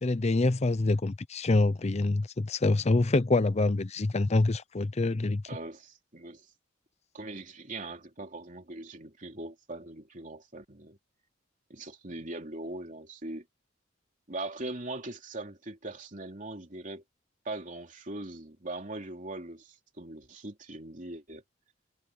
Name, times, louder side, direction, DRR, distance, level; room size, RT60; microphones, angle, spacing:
voice 1, 0.0-5.4, left 2 dB, 35° left, 0.6 m, -26 dB
voice 2, 5.4-6.5 7.1-11.0 11.7-13.5 14.3-17.0 17.4-21.4, right 2 dB, 45° right, 3.1 m, -41 dB
head